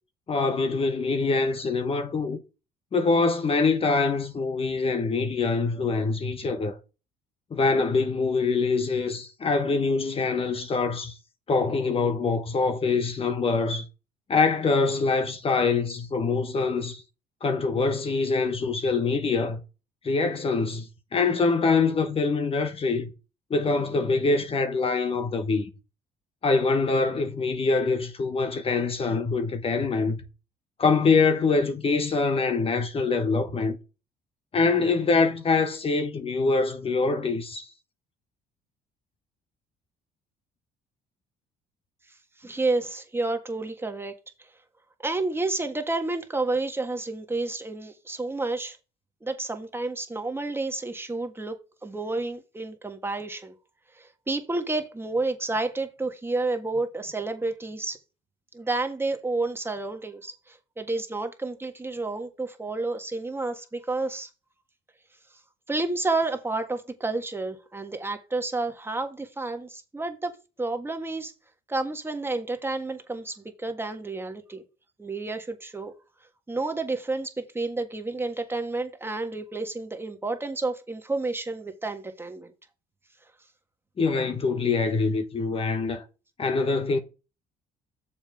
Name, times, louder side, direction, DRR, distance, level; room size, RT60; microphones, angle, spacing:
voice 1, 0.3-2.4 2.9-6.8 7.5-11.1 11.5-13.9 14.3-17.0 17.4-19.6 20.0-23.1 23.5-25.7 26.4-30.2 30.8-33.8 34.5-37.7 84.0-86.0 86.4-87.0, left 4 dB, 35° left, 1.2 m, -24 dB
voice 2, 42.4-44.1 44.4-44.5 45.0-48.8 49.2-51.6 51.8-53.6 53.9-58.0 58.5-64.3 65.7-71.3 71.7-74.6 75.0-75.9 76.5-82.5, right 3 dB, 15° right, 1.6 m, -30 dB
7.1 x 5.6 x 4.8 m
cardioid pair, 110°, 17 cm